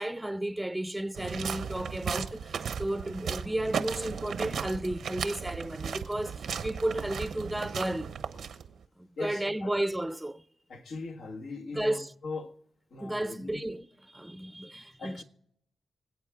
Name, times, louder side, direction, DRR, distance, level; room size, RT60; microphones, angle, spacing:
voice 1, 0.0-8.1 9.0-10.4 11.7-12.1 13.0-13.9 14.1-15.2, right 1 dB, 10° right, 0.6 m, -33 dB
sound 1, 1.1-8.8, right 7 dB, 80° right, 0.9 m, -36 dB
voice 2, 9.2-9.7 10.7-12.5 12.9-13.6 15.0-15.2, left 3 dB, 75° left, 1.5 m, -40 dB
25.0 x 8.5 x 3.7 m
cardioid pair, 80°, 0 cm